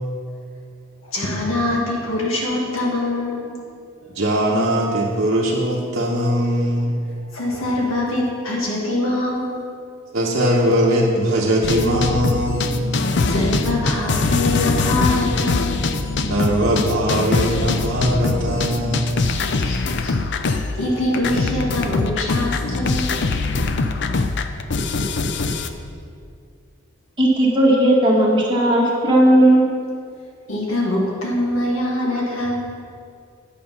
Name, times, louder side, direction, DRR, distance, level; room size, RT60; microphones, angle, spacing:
voice 1, 1.1-3.6 4.0-4.2 7.3-9.6 13.2-15.8 19.5-20.1 20.5-23.2 30.5-32.6, left 1 dB, 80° left, -3 dB, 2.0 m, -24 dB
voice 2, 4.2-6.9 7.8-7.9 10.1-12.9 16.3-19.1, equal, 50° right, -7 dB, 1.1 m, -20 dB
sound 1, 11.6-20.9 21.1-25.7, left 3 dB, 55° left, 0.5 m, -22 dB
voice 3, 27.2-29.7, right 1 dB, 25° right, -4 dB, 1.8 m, -15 dB
10.0 x 7.0 x 5.4 m, 2.3 s
head